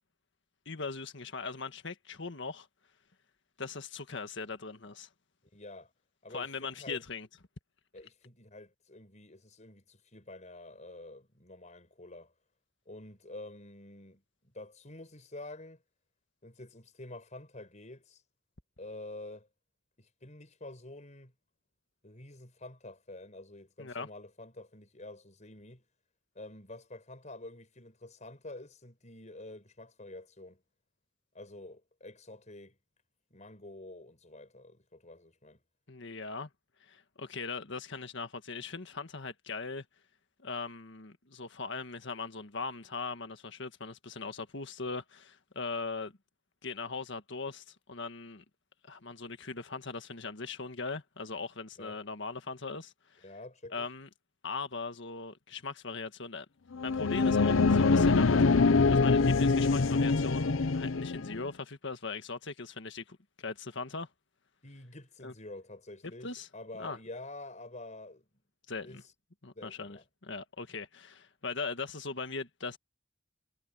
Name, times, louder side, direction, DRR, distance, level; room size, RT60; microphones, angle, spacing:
voice 1, 0.6-2.7 3.6-5.1 6.3-7.3 23.8-24.1 35.9-36.5 36.8-39.8 40.4-46.1 46.6-48.4 48.8-53.2 53.7-54.1 54.4-56.4 56.8-64.1 65.2-65.3 66.2-66.5 66.8-67.0 68.7-69.0 69.4-72.8, left 4 dB, 65° left, 1.7 m, -40 dB
voice 2, 5.5-5.9 6.2-7.0 7.9-12.3 12.9-15.8 16.4-18.2 18.8-19.5 20.0-21.3 22.0-25.8 26.4-30.6 31.3-32.8 33.3-35.6 51.8-52.0 53.2-53.9 64.6-68.3 68.8-69.0 69.5-70.0, left 2 dB, 40° left, 5.5 m, -48 dB
sound 1, 56.7-61.4, left 4 dB, 90° left, 0.7 m, -24 dB
head